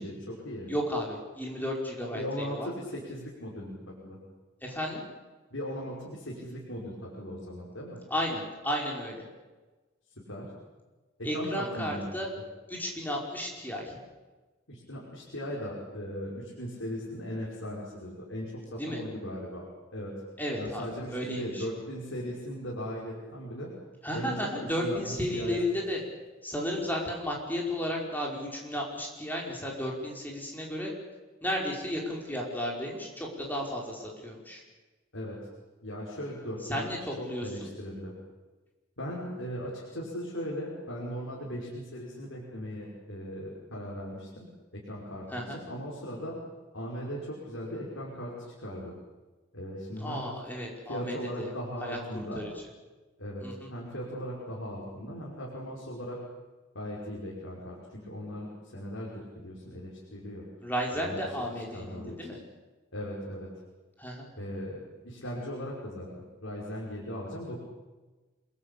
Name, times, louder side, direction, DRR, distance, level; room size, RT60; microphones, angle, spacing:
voice 1, 0.0-0.7 2.1-4.2 5.5-8.0 10.3-10.5 11.2-12.1 14.7-20.2 20.5-23.7 24.1-25.6 35.1-35.4 35.8-36.9 37.2-38.1 39.0-44.5 44.7-46.4 46.7-48.3 48.6-48.9 49.5-50.4 50.9-52.5 53.2-56.2 56.7-60.5 61.0-62.3 62.9-63.5 64.4-67.6, equal, 80° left, -4 dB, 5.8 m, -38 dB
voice 2, 0.7-2.7 4.6-5.0 8.1-9.2 11.2-12.3 12.7-14.0 18.8-19.0 20.4-21.7 24.0-26.0 26.4-30.9 31.4-34.6 36.7-37.7 45.3-45.6 50.0-51.5 51.8-52.5 53.4-53.7 60.6-62.4 64.0-64.3, equal, 10° left, -1 dB, 5.3 m, -33 dB
28.0 x 21.5 x 8.5 m, 1.2 s
head